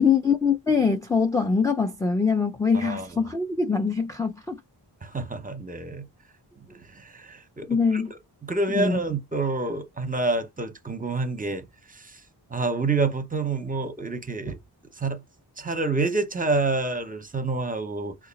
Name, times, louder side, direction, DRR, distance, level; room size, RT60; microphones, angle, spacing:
voice 1, 0.0-4.6 7.7-8.1 8.7-9.0, left 5 dB, 10° left, 0.3 m, -23 dB
voice 2, 5.0-6.1 6.7-8.0 8.4-11.6 11.9-12.0 12.5-14.6 15.0-15.2 15.6-18.1, right 3 dB, 20° right, 0.7 m, -28 dB
2.9 x 2.4 x 4.0 m
wide cardioid pair, 100°, 41 cm